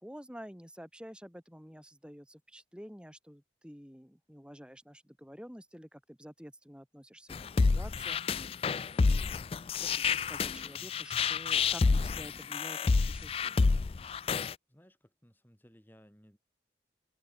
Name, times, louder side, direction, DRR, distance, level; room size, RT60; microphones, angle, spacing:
voice 1, 0.0-8.2 8.5-8.7 9.0-9.3 9.8-13.7, equal, 5° right, 4.9 m, -49 dB
sound 1, 7.3-14.5, left 4 dB, 30° left, 0.3 m, -28 dB
voice 2, 14.7-16.4, equal, 10° left, 4.2 m, -60 dB
open air
head